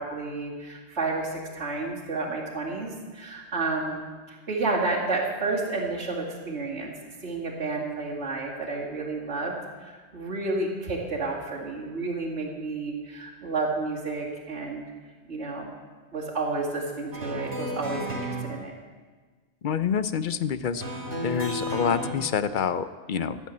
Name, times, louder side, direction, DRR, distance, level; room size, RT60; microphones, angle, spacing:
voice 1, 0.0-6.9 7.2-14.9 15.3-15.7 16.1-18.7, right 3 dB, 80° right, -6 dB, 2.7 m, -31 dB
sound 1, 17.1-18.4 20.8-22.1, equal, 50° right, 2.3 m, -32 dB
voice 2, 19.6-20.8 21.2-23.4, left 7 dB, 55° left, 13 dB, 0.6 m, -27 dB
14.5 x 7.2 x 8.4 m, 1.4 s
omnidirectional pair, 1.2 m